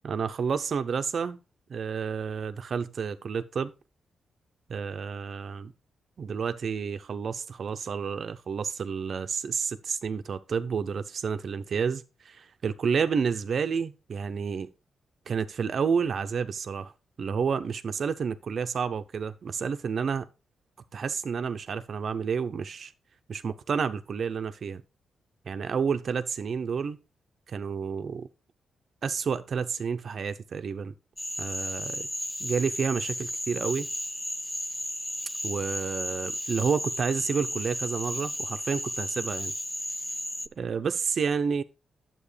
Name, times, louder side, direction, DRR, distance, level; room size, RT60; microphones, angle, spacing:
voice 1, 0.0-1.4 1.7-3.7 4.7-5.7 6.2-14.7 15.3-16.9 17.2-20.3 20.9-22.9 23.3-24.8 25.5-27.0 27.5-28.3 29.0-30.9 31.4-32.1 32.4-33.9 35.4-39.5 40.6-41.6, right 6 dB, 55° right, 0.7 m, -30 dB
Cricket / Frog, 31.2-40.5, equal, 5° left, 0.3 m, -34 dB
9.7 x 7.6 x 3.3 m
cardioid pair, 115°, 0 cm